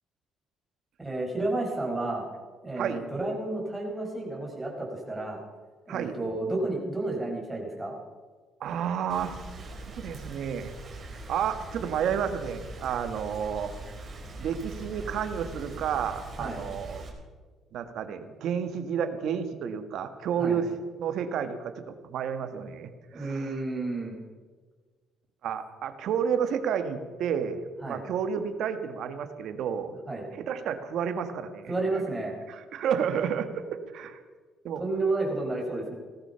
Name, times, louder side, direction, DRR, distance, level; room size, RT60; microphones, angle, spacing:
voice 1, 1.0-2.3 2.6-5.4 5.9-7.9 16.4-16.6 20.4-20.6 23.1-24.1 27.8-28.0 30.1-30.3 31.7-32.4 34.8-35.9, right 2 dB, 10° right, -2 dB, 5.0 m, -31 dB
voice 2, 8.6-10.7 11.0-13.8 14.4-17.0 17.7-20.7 21.0-23.5 25.4-29.9 30.3-32.0 32.5-34.2 34.6-34.8, right 7 dB, 70° right, 9 dB, 1.5 m, -31 dB
Rain, 9.1-17.1, right 2 dB, 35° right, 4.3 m, -42 dB
17.5 x 14.0 x 5.7 m, 1.4 s
cardioid pair, 100°, 0 cm